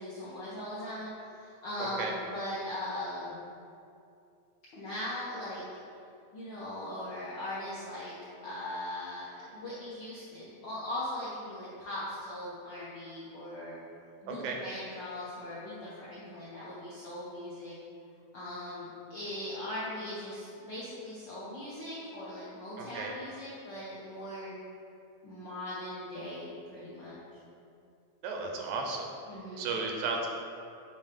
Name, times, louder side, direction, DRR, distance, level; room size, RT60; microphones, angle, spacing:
voice 1, 0.0-3.4 4.7-5.6 6.3-8.1 8.4-13.8 14.2-17.8 18.3-24.5 25.2-27.4 29.3-29.7, left 1 dB, 70° left, -9 dB, 1.1 m, -39 dB
voice 2, 1.8-2.1 14.3-14.6 22.8-23.2 28.2-29.1 29.6-30.3, right 4 dB, 85° right, 1 dB, 2.0 m, -34 dB
7.1 x 2.8 x 5.1 m, 2.5 s
omnidirectional pair, 3.3 m